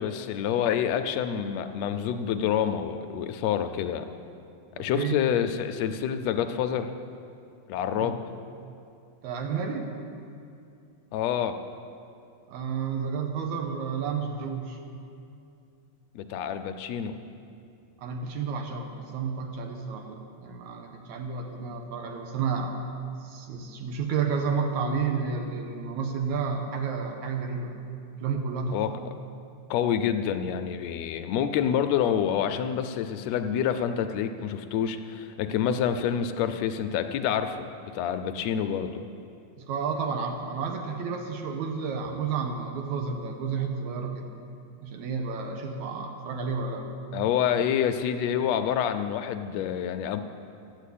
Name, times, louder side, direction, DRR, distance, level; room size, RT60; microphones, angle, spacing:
voice 1, 0.0-4.1 4.8-6.9 7.7-8.2 11.1-11.6 16.1-17.2 28.7-28.9 29.7-39.0 47.1-50.2, left 9 dB, 75° left, 8 dB, 1.7 m, -27 dB
voice 2, 4.8-5.2 8.0-8.1 9.2-9.9 12.5-14.8 18.0-22.8 23.2-27.7 28.2-29.0 39.6-44.3 44.8-46.9, right 5 dB, 80° right, 3 dB, 2.3 m, -31 dB
12.5 x 8.4 x 8.4 m, 2.5 s
omnidirectional pair, 3.4 m